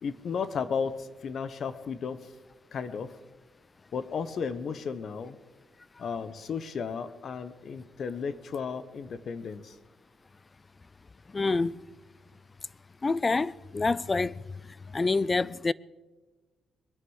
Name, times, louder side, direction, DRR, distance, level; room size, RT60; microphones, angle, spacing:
voice 1, 0.0-2.2 2.7-3.1 3.9-5.4 6.0-9.7, left 6 dB, 55° left, 1.0 m, -34 dB
voice 2, 11.3-11.8 13.0-14.3 14.9-15.7, left 3 dB, 25° left, 0.4 m, -26 dB
22.0 x 9.6 x 6.4 m
cardioid pair, 90°, 0 cm